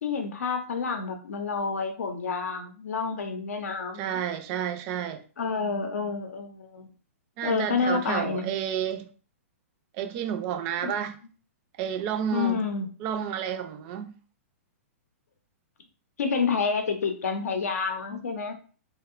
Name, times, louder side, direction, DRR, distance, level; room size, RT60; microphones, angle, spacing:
voice 1, 0.0-4.2 5.4-6.9 7.4-8.5 10.8-10.9 12.3-12.9 16.2-18.5, left 5 dB, 80° left, 0.6 m, -29 dB
voice 2, 4.0-5.2 7.4-9.1 9.9-11.2 11.8-12.6 13.0-14.2, right 9 dB, 35° right, 0.3 m, -30 dB
2.8 x 2.1 x 2.4 m
hypercardioid pair, 130°, 8 cm